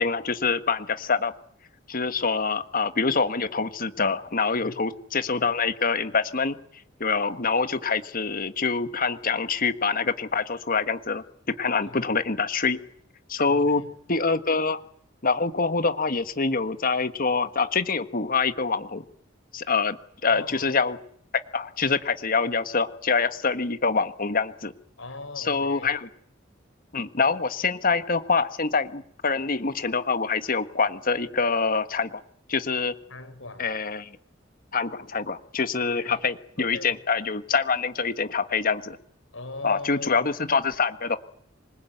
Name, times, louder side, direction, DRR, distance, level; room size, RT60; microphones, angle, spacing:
voice 1, 0.0-1.3 1.9-6.6 7.0-11.2 11.6-12.8 13.3-13.8 14.1-14.8 15.2-19.0 19.5-20.0 20.2-21.0 21.5-24.7 25.4-26.1 26.9-32.2 32.5-32.9 33.6-34.2 34.7-39.0 39.6-41.2, left 4 dB, 45° left, 10 dB, 1.5 m, -25 dB
voice 2, 11.8-12.2 13.5-13.9 20.3-20.8 25.0-25.9 33.1-33.7 35.8-36.2 36.6-37.0 39.3-40.2, left 2 dB, 90° left, 6 dB, 5.4 m, -40 dB
26.5 x 20.5 x 9.3 m, 0.68 s
head